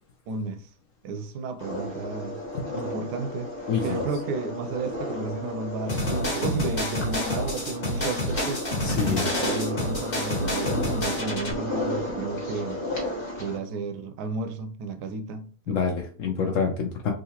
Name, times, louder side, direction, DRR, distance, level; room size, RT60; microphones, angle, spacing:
voice 1, 0.3-0.6 1.0-2.4 2.7-3.5 3.8-12.8 13.4-15.8 16.4-16.5, right 3 dB, 80° right, 1.2 m, -33 dB
sound 1, 1.6-13.6, left 1 dB, 20° left, 1.1 m, -33 dB
sound 2, 5.9-11.5, left 1 dB, 35° left, 1.4 m, -29 dB
voice 2, 8.8-9.2 15.7-17.1, left 6 dB, 70° left, 0.8 m, -26 dB
3.7 x 2.8 x 2.8 m
omnidirectional pair, 1.8 m